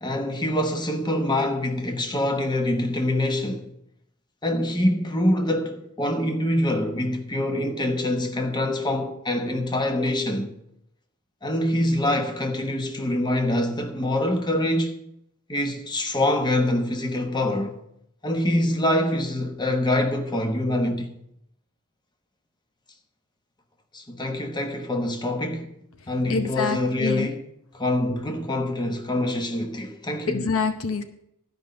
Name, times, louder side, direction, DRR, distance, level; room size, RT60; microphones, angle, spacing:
voice 1, 0.0-3.7 4.4-10.5 11.4-15.0 15.5-17.8 18.2-21.1 23.9-25.7 26.1-27.4 27.7-30.5, left 1 dB, 20° left, 1.1 m, -25 dB
voice 2, 26.3-27.3 30.3-31.0, left 4 dB, 65° left, 0.8 m, -26 dB
12.0 x 5.4 x 7.7 m
head